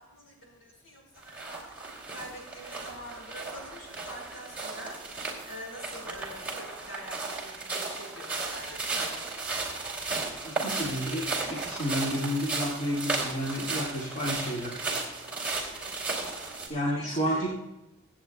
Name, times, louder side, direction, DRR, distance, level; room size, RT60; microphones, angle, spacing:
voice 1, 0.0-9.1 15.7-16.4 16.7-17.4, equal, 75° left, -1 dB, 4.7 m, -45 dB
sound 1, 1.2-16.7, right 3 dB, 5° right, 2.6 m, -35 dB
voice 2, 10.1-14.8 16.7-17.5, equal, 35° left, -5 dB, 2.0 m, -31 dB
23.5 x 8.7 x 2.3 m, 0.98 s
head